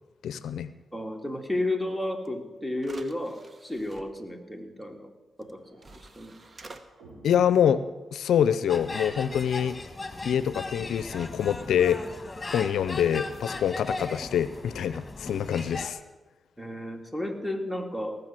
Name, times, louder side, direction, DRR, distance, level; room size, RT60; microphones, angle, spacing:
voice 1, 0.2-0.7 7.2-7.8 8.1-9.8 10.2-12.0 12.5-16.0, left 9 dB, 85° left, 14 dB, 0.5 m, -25 dB
voice 2, 0.9-5.1 5.4-5.8 6.2-6.3 16.6-18.2, left 1 dB, 5° right, 4 dB, 2.3 m, -32 dB
sound 1, 2.2-2.3 2.8-4.0 5.4-5.5 5.8-6.8, right 2 dB, 40° right, 1.1 m, -48 dB
sound 2, 5.4-8.7 9.8-13.0, right 1 dB, 90° right, 3.9 m, -54 dB
sound 3, 8.7-15.9, left 3 dB, 30° left, 1.5 m, -37 dB
18.0 x 6.8 x 7.5 m, 1.2 s
supercardioid pair, 50°, 0 cm